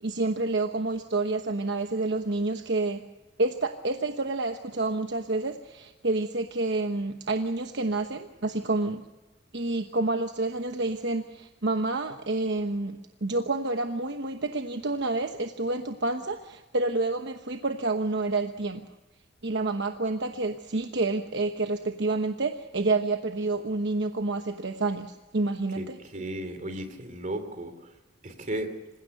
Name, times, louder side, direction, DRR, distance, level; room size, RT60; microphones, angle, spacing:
voice 1, 0.0-3.0 3.4-9.0 9.5-18.8 19.4-26.2, right 2 dB, 60° right, 6 dB, 1.1 m, -29 dB
voice 2, 25.8-27.7 28.2-28.7, right 1 dB, 40° right, 8 dB, 2.9 m, -34 dB
26.5 x 16.5 x 6.7 m, 1.1 s
head